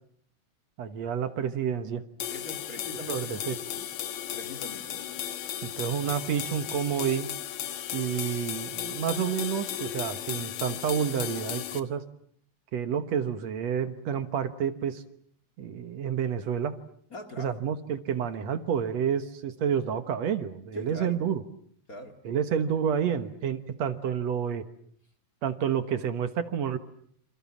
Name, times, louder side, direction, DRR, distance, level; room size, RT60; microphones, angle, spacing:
voice 1, 0.8-2.0 3.1-3.5 5.6-7.3 7.9-12.0 12.7-15.0 15.6-16.7 17.4-21.4 22.3-24.6 25.4-26.8, right 8 dB, 65° right, 10 dB, 2.4 m, -29 dB
sound 1, 2.2-11.8, left 11 dB, 70° left, 2.5 m, -35 dB
voice 2, 2.3-3.9 4.3-5.2 17.1-17.6 20.7-21.2 21.9-22.2, left 1 dB, 30° left, 6 dB, 2.1 m, -43 dB
28.0 x 27.5 x 7.2 m, 0.64 s
omnidirectional pair, 3.4 m